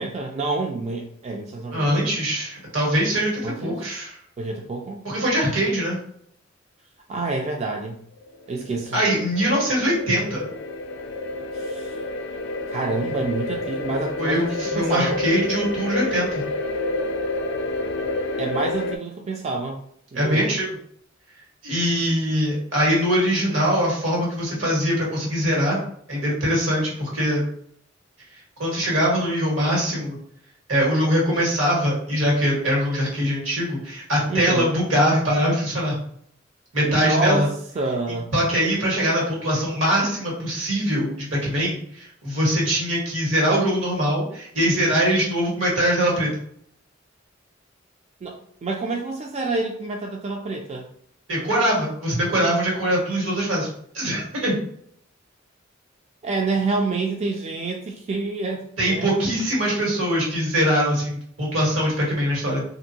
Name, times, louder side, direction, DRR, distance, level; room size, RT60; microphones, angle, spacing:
voice 1, 0.0-2.0 3.4-3.9 4.4-5.0 7.1-8.0 8.5-9.0 11.5-12.0 12.7-15.2 18.4-19.8 20.1-20.5 34.3-34.7 36.8-38.3 48.2-50.9 56.2-59.2, right 3 dB, 35° right, 1 dB, 0.3 m, -28 dB
voice 2, 1.7-4.1 5.0-6.0 8.9-10.4 14.2-16.4 20.1-20.7 21.6-25.8 26.1-27.4 28.6-30.2 30.7-36.0 36.7-37.5 38.3-46.3 51.3-53.7 53.9-54.6 58.8-62.6, equal, 85° right, -4 dB, 1.5 m, -22 dB
sound 1, 8.2-19.0, left 2 dB, 60° left, 0.3 m, -29 dB
3.0 x 2.6 x 2.7 m, 0.66 s
head